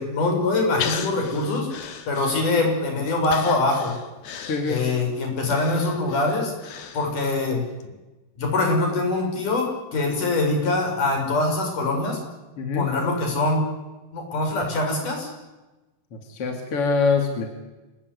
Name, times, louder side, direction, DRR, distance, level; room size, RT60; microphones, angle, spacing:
voice 1, 0.0-1.7 2.1-3.9 4.7-6.5 6.9-7.6 8.4-12.2 12.7-13.7 14.1-15.3, left 2 dB, 60° left, 2 dB, 7.4 m, -23 dB
Breathing, 0.8-2.8 3.2-7.4 7.8-7.9, left 7 dB, 85° left, 3.9 m, -36 dB
voice 2, 4.5-4.9 12.6-12.9 16.1-17.5, left 4 dB, 40° left, 4 dB, 3.3 m, -24 dB
27.5 x 19.0 x 9.7 m, 1.1 s
omnidirectional pair, 4.2 m